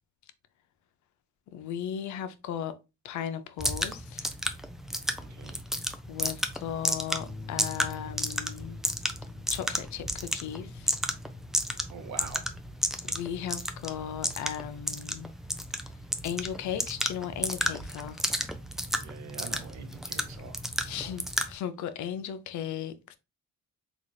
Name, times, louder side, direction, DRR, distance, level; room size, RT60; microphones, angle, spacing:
voice 1, 1.5-2.7 3.0-4.3 6.1-8.8 9.5-10.9 13.0-15.3 16.2-18.2 20.8-23.2, left 9 dB, 70° left, 0.6 m, -36 dB
sound 1, 3.6-21.5, equal, ahead, 0.4 m, -33 dB
voice 2, 5.2-5.6 11.9-12.4 18.9-20.6 20.9-21.2, right 6 dB, 70° right, 0.7 m, -44 dB
sound 2, 7.2-15.7, left 4 dB, 20° left, 1.4 m, -48 dB
4.0 x 2.4 x 3.1 m
cardioid pair, 90°, 30 cm